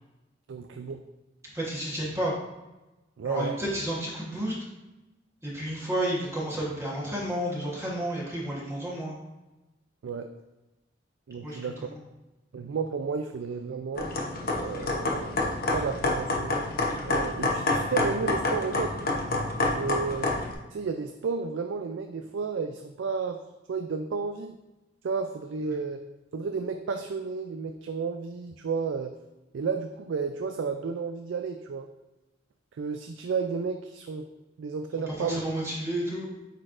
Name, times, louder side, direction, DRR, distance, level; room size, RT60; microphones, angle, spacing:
voice 1, 0.5-1.0 3.2-3.6 10.0-10.3 11.3-11.9 12.5-14.1 14.6-16.6 17.1-18.9 19.7-20.4 20.7-23.4 23.7-24.6 25.0-26.0 26.3-29.1 29.5-31.9 32.8-34.3 34.6-35.4, right 5 dB, 80° right, 6 dB, 0.4 m, -32 dB
voice 2, 1.5-2.3 3.2-4.5 5.4-9.2 11.4-12.0 35.1-36.3, right 1 dB, 15° right, -5 dB, 1.2 m, -31 dB
sound 1, 14.0-20.5, left 2 dB, 50° left, 0.8 m, -28 dB
8.8 x 4.2 x 2.5 m, 1.0 s
head